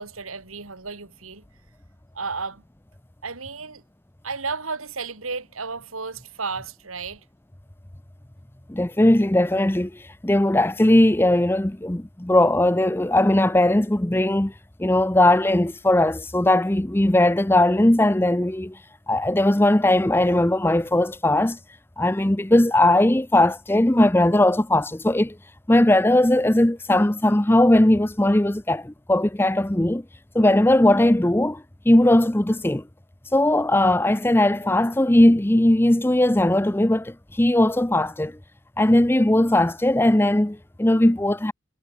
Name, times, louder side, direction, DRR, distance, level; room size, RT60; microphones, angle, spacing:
voice 1, 0.0-1.4 2.1-2.6 3.2-3.8 4.2-7.2, right 4 dB, 90° right, 3.2 m, -33 dB
voice 2, 8.7-9.9 10.2-14.5 14.8-18.8 19.1-21.6 22.0-25.4 25.7-30.0 30.3-32.8 33.3-38.3 38.8-41.5, left 1 dB, 10° left, 0.6 m, -19 dB
head